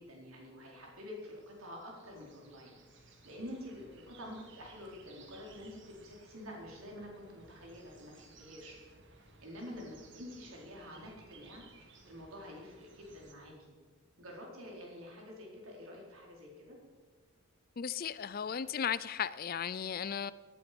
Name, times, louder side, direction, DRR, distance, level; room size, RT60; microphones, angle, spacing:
voice 1, 0.0-2.7 3.0-8.8 9.1-11.6 12.0-13.7 14.2-16.8, left 1 dB, 75° right, -1 dB, 4.3 m, -48 dB
sound 1, 1.1-13.3, right 3 dB, 55° right, 2.0 m, -60 dB
voice 2, 17.8-20.3, left 8 dB, 45° left, 17 dB, 0.4 m, -35 dB
17.5 x 11.5 x 5.3 m, 1.5 s
head